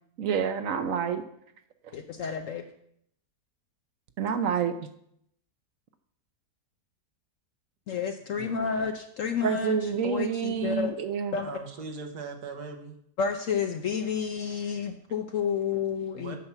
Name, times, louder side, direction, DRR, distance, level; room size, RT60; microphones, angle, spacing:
voice 1, 0.2-1.2 4.2-4.9 9.4-11.4, right 7 dB, 60° right, 9 dB, 1.0 m, -28 dB
voice 2, 1.9-2.6 7.9-9.8 10.0-10.9 11.3-11.5 13.2-16.4, left 6 dB, 60° left, 5 dB, 1.0 m, -30 dB
voice 3, 11.4-13.0 16.1-16.4, right 4 dB, 80° right, 4 dB, 1.8 m, -40 dB
8.8 x 6.0 x 6.9 m, 0.72 s
omnidirectional pair, 1.7 m